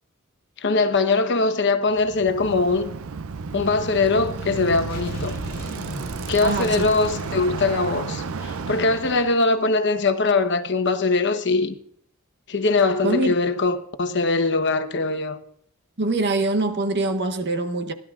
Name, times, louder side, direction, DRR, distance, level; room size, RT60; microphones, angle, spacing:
voice 1, 0.6-2.9 3.5-5.4 6.3-11.8 12.5-15.4, left 3 dB, 55° left, 1.0 m, -21 dB
Bicycle, 1.9-9.4, right 4 dB, 75° right, 0.5 m, -32 dB
sound 1, 4.9-8.6, left 1 dB, 40° left, 2.0 m, -39 dB
voice 2, 6.4-6.9 13.0-13.3 16.0-17.9, right 2 dB, 55° right, 1.0 m, -24 dB
30.0 x 11.5 x 2.5 m
head